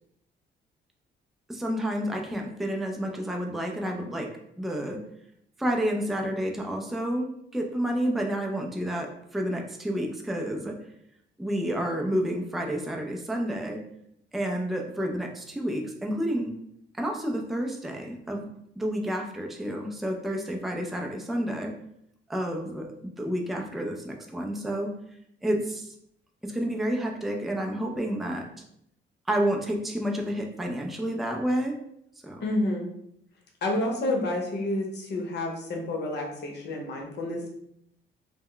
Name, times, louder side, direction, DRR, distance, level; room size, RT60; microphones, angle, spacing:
voice 1, 1.5-4.3 4.6-5.0 5.6-10.7 11.4-13.8 14.3-16.5 17.0-18.5 18.8-21.7 22.3-24.9 25.4-25.9 26.4-28.4 29.3-31.8 32.2-32.4, equal, ahead, 1 dB, 0.4 m, -30 dB
voice 2, 32.4-32.9 33.6-37.5, left 1 dB, 60° left, 1 dB, 0.8 m, -29 dB
2.1 x 2.1 x 3.7 m, 0.74 s
cardioid pair, 90°, 20 cm